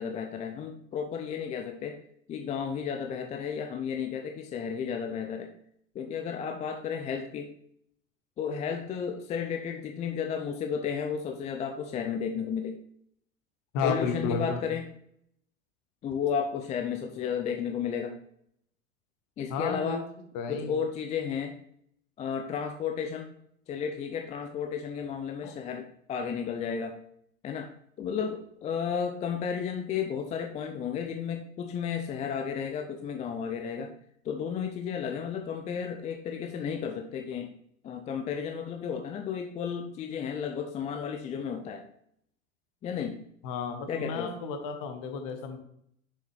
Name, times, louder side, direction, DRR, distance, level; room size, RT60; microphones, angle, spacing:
voice 1, 0.0-2.0 2.3-5.5 5.9-7.5 8.4-12.8 13.8-14.9 16.0-18.1 19.4-20.0 20.5-21.6 22.2-23.3 23.7-26.9 27.4-27.7 28.0-33.9 34.2-37.5 37.8-41.9 42.8-43.2 43.9-44.3, left 7 dB, 15° left, 5 dB, 0.5 m, -33 dB
voice 2, 13.7-14.6 19.5-20.0 20.3-20.7 25.4-25.5 43.4-45.6, left 5 dB, 45° left, 6 dB, 1.6 m, -32 dB
6.7 x 6.4 x 3.4 m, 0.69 s
figure-of-eight pair, 90°, 41 cm